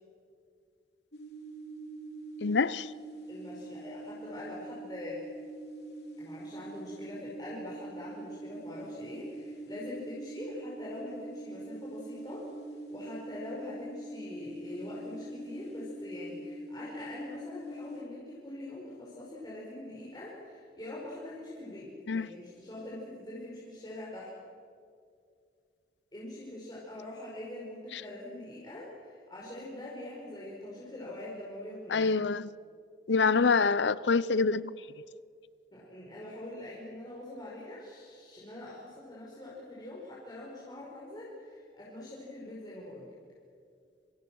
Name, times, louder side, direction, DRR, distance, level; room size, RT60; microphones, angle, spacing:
sound 1, 1.1-18.0, right 1 dB, 65° left, 3.4 m, -44 dB
voice 1, 2.4-2.9 22.1-22.3 27.9-28.0 31.9-32.4 33.1-34.7, left 4 dB, 85° left, 0.7 m, -26 dB
voice 2, 3.3-5.3 6.2-12.5 12.9-24.3 26.1-32.1 35.7-43.1, left 1 dB, 25° left, 5.4 m, -43 dB
28.0 x 27.5 x 6.3 m
head